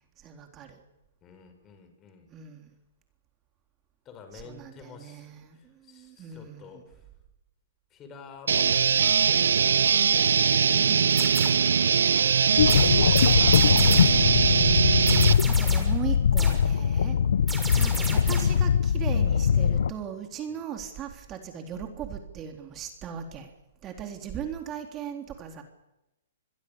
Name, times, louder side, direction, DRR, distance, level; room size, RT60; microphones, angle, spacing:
voice 1, 0.2-0.8 2.3-2.7 4.4-6.8 10.7-11.8 15.5-17.2 17.8-23.5 23.8-25.6, right 8 dB, 25° right, 4 dB, 3.7 m, -38 dB
voice 2, 1.2-2.3 4.0-7.0 7.9-10.4 11.9-13.5 16.9-17.3 20.5-20.6, left 5 dB, 25° left, 7 dB, 6.1 m, -49 dB
sound 1, 8.5-15.3, right 7 dB, 80° right, 1.2 m, -21 dB
sound 2, 11.1-11.7 12.7-14.3 15.1-16.0 16.4-16.7 17.5-18.6, right 3 dB, 10° right, 6.5 m, -36 dB
sound 3, 12.6-19.9, left 7 dB, 75° left, 0.8 m, -22 dB
27.5 x 21.5 x 7.1 m, 0.93 s
hypercardioid pair, 125°, 0 cm